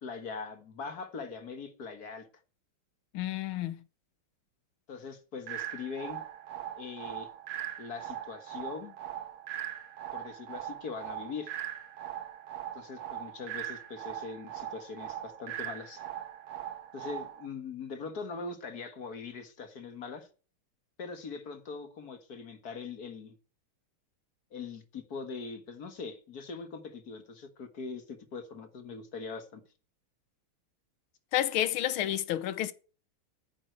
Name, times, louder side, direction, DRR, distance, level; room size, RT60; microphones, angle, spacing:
voice 1, 0.0-2.3 4.9-6.2 6.8-7.3 7.8-9.0 10.1-11.5 12.7-16.0 16.9-20.3 21.0-23.4 24.5-29.6, left 4 dB, 50° left, 1.9 m, -41 dB
voice 2, 3.1-3.8 31.3-32.7, left 12 dB, 90° left, 1.7 m, -30 dB
sound 1, 5.5-17.5, right 11 dB, 85° right, 1.8 m, -40 dB
9.8 x 7.9 x 7.9 m
omnidirectional pair, 2.3 m